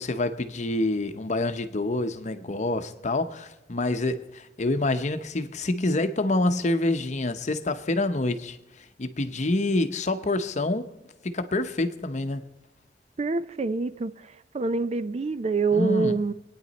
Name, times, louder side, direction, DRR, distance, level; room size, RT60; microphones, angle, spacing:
voice 1, 0.0-10.9 11.2-12.4 15.7-16.2, left 2 dB, 40° left, 0.8 m, -27 dB
voice 2, 13.2-16.3, right 4 dB, 35° right, 0.4 m, -26 dB
24.0 x 9.6 x 4.1 m
head